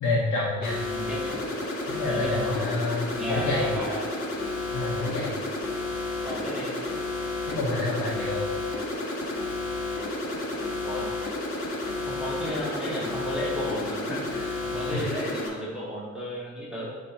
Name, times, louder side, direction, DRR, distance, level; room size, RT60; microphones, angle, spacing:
voice 1, 0.0-0.8 2.0-3.7 4.7-5.3 7.5-8.4 14.9-15.0, left 2 dB, 85° left, -5 dB, 1.2 m, -28 dB
sound 1, 0.6-15.5, left 2 dB, 45° left, 2.0 m, -31 dB
voice 2, 0.9-1.3 2.0-2.5 3.2-4.1 6.2-6.8 10.8-11.1 12.1-16.9, equal, ahead, -7 dB, 1.5 m, -33 dB
8.7 x 3.1 x 4.4 m, 1.5 s
cardioid pair, 90°, 30 cm